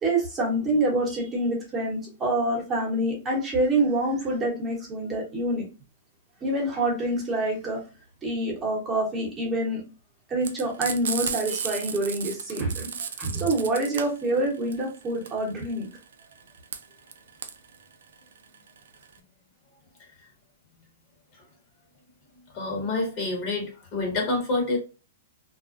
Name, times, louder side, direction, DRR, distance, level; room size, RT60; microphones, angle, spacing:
voice 1, 0.0-5.6 6.4-7.8 8.2-9.8 10.3-12.9 13.2-15.9, right 1 dB, 20° right, -2 dB, 1.0 m, -26 dB
Frying (food), 10.4-19.2, right 7 dB, 80° right, 0.3 m, -34 dB
voice 2, 22.5-24.8, left 2 dB, 40° left, 0 dB, 1.1 m, -27 dB
2.4 x 2.1 x 2.5 m, 0.31 s
hypercardioid pair, 130°, 0 cm